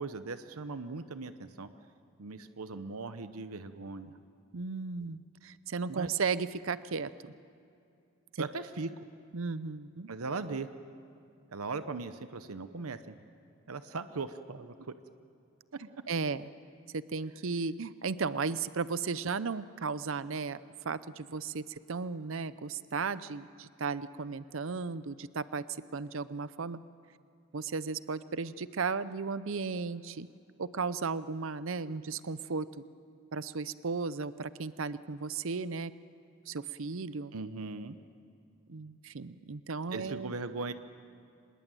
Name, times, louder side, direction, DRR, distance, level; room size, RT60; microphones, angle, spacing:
voice 1, 0.0-1.7 2.2-4.2 5.9-6.1 8.4-8.9 10.1-10.7 11.5-13.1 13.7-14.9 37.3-38.0 39.9-40.7, right 3 dB, 85° right, 11 dB, 0.9 m, -39 dB
voice 2, 4.5-7.3 8.3-8.4 9.3-10.1 16.1-16.5 16.9-20.6 20.8-25.6 25.9-26.8 27.5-30.3 30.6-32.7 33.3-35.9 36.5-37.3 38.7-40.3, right 4 dB, 65° right, 15 dB, 0.6 m, -35 dB
25.5 x 20.5 x 9.1 m, 2.6 s
head